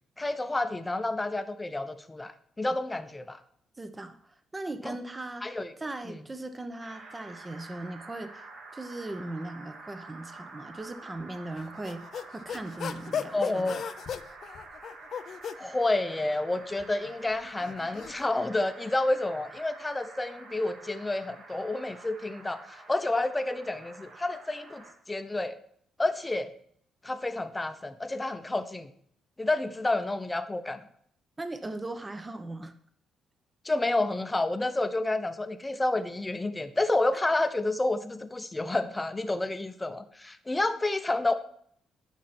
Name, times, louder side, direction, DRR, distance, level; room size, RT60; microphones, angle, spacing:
voice 1, 0.2-3.4 4.9-5.0 5.4-5.7 6.1-6.2 13.3-13.8 15.6-25.6 26.0-26.5 27.0-28.9 29.4-30.8 33.6-41.3, left 2 dB, 15° left, 10 dB, 0.8 m, -29 dB
voice 2, 3.8-8.4 8.7-12.0 12.3-13.8 31.4-32.8, right 2 dB, 20° right, 9 dB, 0.9 m, -39 dB
sound 1, 6.8-24.9, right 3 dB, 70° right, 1.9 m, -48 dB
sound 2, 11.6-15.6 16.5-18.3, left 7 dB, 60° left, 0.5 m, -37 dB
10.5 x 5.8 x 4.3 m, 0.64 s
cardioid pair, 90°, 0 cm